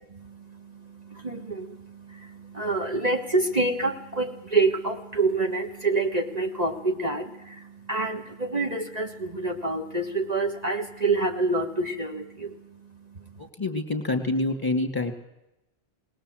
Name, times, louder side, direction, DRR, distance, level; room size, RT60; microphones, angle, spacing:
voice 1, 0.1-13.5, right 3 dB, 40° right, 2 dB, 1.5 m, -28 dB
voice 2, 13.4-15.1, left 2 dB, 20° left, 6 dB, 2.1 m, -27 dB
20.0 x 20.0 x 7.7 m, 0.93 s
omnidirectional pair, 1.1 m